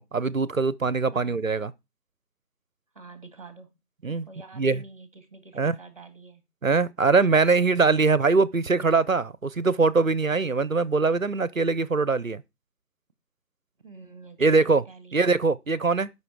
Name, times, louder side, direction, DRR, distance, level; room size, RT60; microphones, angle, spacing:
voice 1, 0.0-1.7 4.0-4.3 4.5-4.8 5.6-5.8 6.6-12.4 14.4-14.8 15.1-16.1, right 4 dB, 55° right, 0.7 m, -22 dB
voice 2, 2.9-3.7 4.1-6.4 13.8-15.3, right 3 dB, 20° right, 1.7 m, -47 dB
11.0 x 6.0 x 4.7 m
figure-of-eight pair, 175°, 49 cm